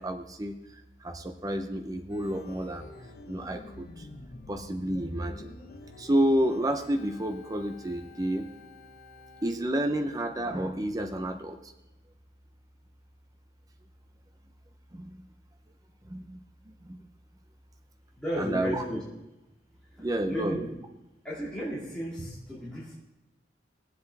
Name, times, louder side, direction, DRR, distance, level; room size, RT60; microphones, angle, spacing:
voice 1, 0.0-2.9 3.3-4.1 4.5-5.5 6.0-8.5 9.4-11.7 14.9-15.2 16.1-16.4 16.7-17.0 18.4-18.8 20.0-20.6, right 1 dB, 20° right, 5 dB, 0.7 m, -30 dB
Organ, 2.1-9.5, left 2 dB, 55° left, 1.1 m, -48 dB
voice 2, 18.2-19.0 19.9-20.7 21.2-22.9, equal, 5° left, -9 dB, 2.4 m, -34 dB
20.0 x 7.9 x 3.5 m, 0.95 s
head